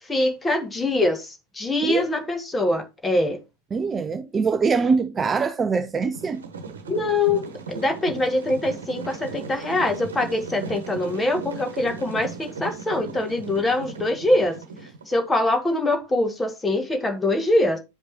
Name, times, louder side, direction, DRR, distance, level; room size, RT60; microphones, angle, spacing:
voice 1, 0.1-3.4 6.9-14.5 15.1-17.8, left 2 dB, 10° left, 1.2 m, -23 dB
voice 2, 3.7-6.4, right 5 dB, 20° right, 0.4 m, -23 dB
sound 1, 6.1-15.2, right 4 dB, 65° right, 1.2 m, -37 dB
10.5 x 5.1 x 2.9 m
figure-of-eight pair, 90°, 0 cm